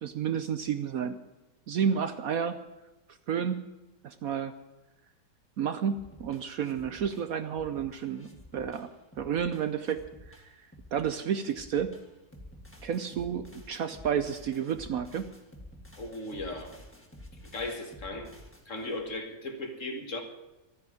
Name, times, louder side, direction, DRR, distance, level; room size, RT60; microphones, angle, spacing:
voice 1, 0.0-1.2 1.7-2.6 3.3-3.6 4.0-4.5 5.6-8.9 9.2-10.0 10.3-10.4 10.9-12.0 12.8-15.3, right 8 dB, 65° right, 11 dB, 1.0 m, -31 dB
sound 1, 5.9-19.1, left 1 dB, 5° left, 2.0 m, -51 dB
voice 2, 16.0-16.8 17.5-18.3 18.7-20.2, left 2 dB, 45° left, 5 dB, 2.0 m, -37 dB
13.0 x 9.6 x 9.5 m, 1.1 s
omnidirectional pair, 1.9 m